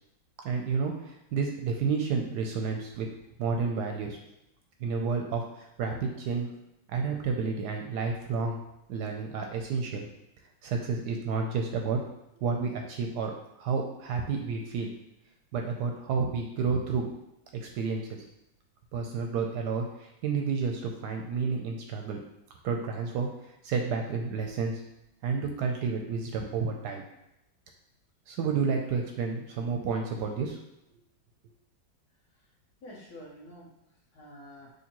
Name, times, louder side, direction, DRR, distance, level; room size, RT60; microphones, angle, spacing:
voice 1, 0.4-3.1 3.4-4.2 4.8-6.5 6.9-8.6 8.9-10.1 10.6-12.0 12.3-14.9 15.5-17.1 17.6-18.2 18.9-22.2 22.6-24.8 25.2-27.0 28.3-30.6, right 5 dB, 75° right, 2 dB, 1.1 m, -30 dB
voice 2, 32.8-34.7, equal, 60° left, -5 dB, 1.6 m, -49 dB
6.4 x 2.8 x 2.9 m, 0.86 s
omnidirectional pair, 2.0 m